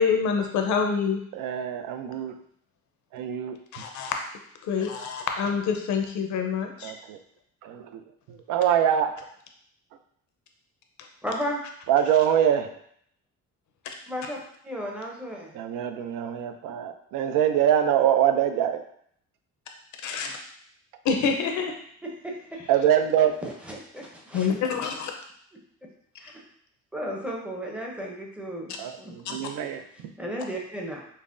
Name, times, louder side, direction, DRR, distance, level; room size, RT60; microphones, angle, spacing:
voice 1, 0.0-1.2 3.7-4.2 4.6-6.9 20.0-20.4 21.0-21.8 24.3-25.1 29.2-29.3, left 6 dB, 65° left, 3 dB, 0.6 m, -26 dB
voice 2, 1.4-2.3 3.1-3.6 6.8-7.2 7.6-7.8 8.5-9.2 11.9-12.7 15.6-18.8 22.7-23.3 28.8-29.8, right 10 dB, 85° right, 7 dB, 0.5 m, -23 dB
voice 3, 11.2-11.6 14.1-15.5 22.0-22.6 22.9-24.5 26.2-26.4 26.9-29.4 30.2-31.0, equal, 5° right, -2 dB, 0.6 m, -35 dB
5.4 x 2.1 x 2.5 m, 0.65 s
cardioid pair, 155°, 32 cm